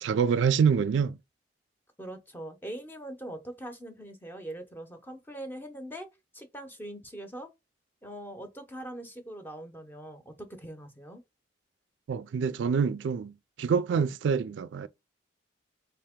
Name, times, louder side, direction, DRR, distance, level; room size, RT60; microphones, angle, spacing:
voice 1, 0.0-1.2 12.1-14.9, right 6 dB, 80° right, 0.3 m, -26 dB
voice 2, 2.0-6.1 6.3-7.5 8.0-11.2, right 1 dB, 10° left, 0.6 m, -42 dB
3.5 x 2.8 x 3.5 m
head